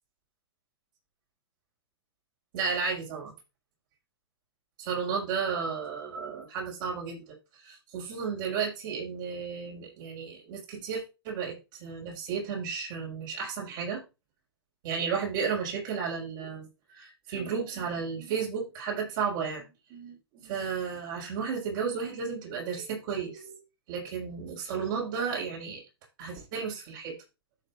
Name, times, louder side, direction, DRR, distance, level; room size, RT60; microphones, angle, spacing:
voice 1, 2.5-3.3 4.8-14.0 14.8-19.6 19.9-23.6 23.9-25.8 26.2-27.2, right 6 dB, 50° right, 6.3 m, -33 dB
14.0 x 7.0 x 2.6 m
hypercardioid pair, 140°, 14 cm